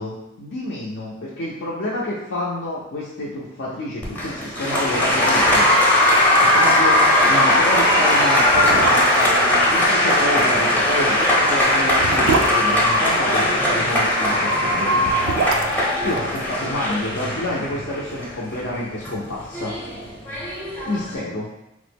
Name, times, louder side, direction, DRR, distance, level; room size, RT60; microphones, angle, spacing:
voice 1, 0.0-5.7 6.4-14.9 16.0-19.7 20.9-21.5, left 1 dB, 65° left, -6 dB, 0.5 m, -28 dB
Applause, 4.0-21.2, left 1 dB, 10° left, 0.6 m, -19 dB
sound 1, 5.0-5.1 5.4-6.0 6.3-6.4 6.8-7.0 7.7-7.8 8.4-9.4 10.9-13.6 14.8-17.1 17.3-17.4, right 4 dB, 85° right, 0.3 m, -26 dB
3.1 x 2.0 x 3.4 m, 0.89 s
head